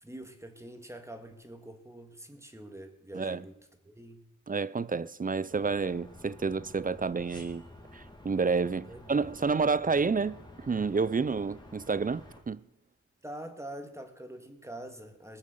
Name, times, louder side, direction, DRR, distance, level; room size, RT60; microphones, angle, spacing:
voice 1, 0.0-3.5 3.8-4.2 8.9-9.3 13.2-15.4, right 1 dB, 10° right, 1.9 m, -45 dB
voice 2, 4.5-7.6 7.9-12.6, right 4 dB, 30° right, 0.5 m, -29 dB
sound 1, 5.5-12.4, left 1 dB, 15° left, 2.5 m, -51 dB
20.5 x 7.2 x 6.7 m
wide cardioid pair, 90°, 31 cm